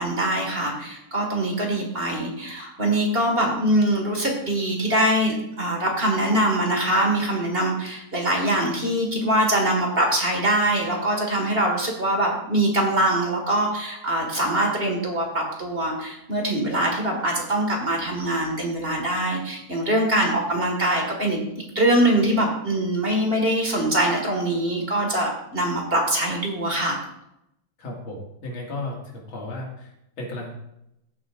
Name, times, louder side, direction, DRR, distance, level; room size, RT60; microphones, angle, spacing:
voice 1, 0.0-21.4 21.8-27.0, right 1 dB, 30° right, 1 dB, 1.8 m, -23 dB
voice 2, 27.8-30.5, left 2 dB, 70° left, -2 dB, 2.9 m, -34 dB
15.5 x 8.2 x 2.5 m, 0.82 s
omnidirectional pair, 2.3 m